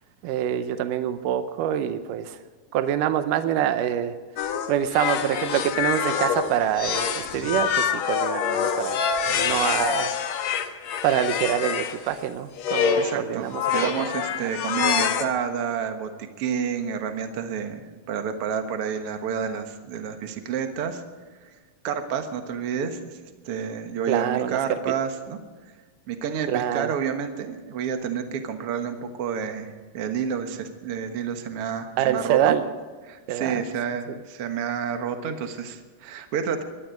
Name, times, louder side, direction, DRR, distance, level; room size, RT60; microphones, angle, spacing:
voice 1, 0.2-2.4 2.7-4.2 4.7-10.1 11.0-13.9 24.1-24.6 26.5-26.9 32.0-32.7 33.3-33.6, right 10 dB, 80° right, 10 dB, 2.3 m, -25 dB
sound 1, 4.4-12.0 12.6-13.2 13.5-15.2, left 7 dB, 65° left, 2.1 m, -26 dB
voice 2, 13.0-13.5 13.7-21.0 21.4-21.5 21.8-23.2 23.4-25.4 26.1-32.5 33.0-36.6, right 7 dB, 55° right, 6 dB, 1.9 m, -29 dB
21.5 x 12.0 x 5.1 m, 1.4 s
omnidirectional pair, 3.9 m